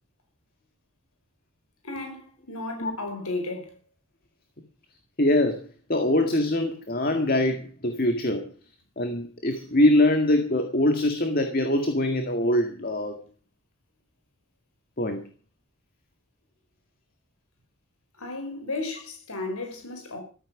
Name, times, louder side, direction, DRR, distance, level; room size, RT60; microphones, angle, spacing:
voice 1, 1.8-3.8 18.2-20.2, left 2 dB, 85° left, 5.3 m, -34 dB
voice 2, 5.2-5.6 5.9-8.5 9.0-13.2 15.0-15.2, left 1 dB, 40° left, 1.9 m, -23 dB
14.0 x 13.5 x 6.0 m
head